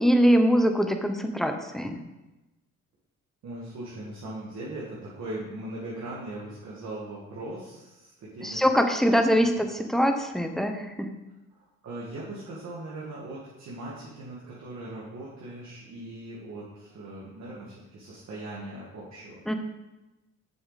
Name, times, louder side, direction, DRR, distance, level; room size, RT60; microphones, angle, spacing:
voice 1, 0.0-2.0 8.4-11.1 19.5-19.6, equal, ahead, 5 dB, 0.8 m, -23 dB
voice 2, 3.4-8.6 9.0-9.2 11.8-19.4, right 1 dB, 60° right, -7 dB, 2.0 m, -39 dB
7.2 x 6.8 x 4.1 m, 1.0 s
cardioid pair, 90°, 30 cm